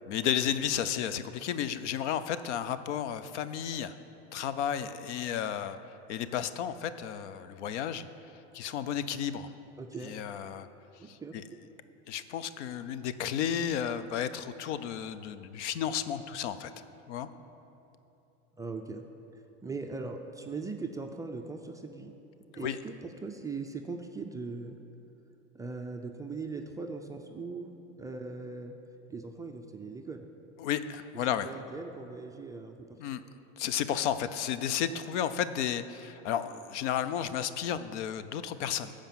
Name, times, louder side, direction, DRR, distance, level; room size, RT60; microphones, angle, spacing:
voice 1, 0.1-3.9 4.3-5.8 6.1-8.1 8.5-9.5 10.0-10.7 11.1-11.4 12.1-16.7 17.1-17.3 22.5-22.8 30.6-31.5 33.0-33.2 33.6-38.9, left 9 dB, 75° left, 12 dB, 0.7 m, -33 dB
voice 2, 9.8-10.1 11.0-11.6 18.5-19.0 19.6-22.1 22.6-24.8 25.5-27.7 28.0-28.8 29.1-30.3 31.4-32.9, right 4 dB, 10° right, 4 dB, 0.3 m, -40 dB
14.0 x 5.1 x 7.4 m, 2.9 s
supercardioid pair, 120°, 35 cm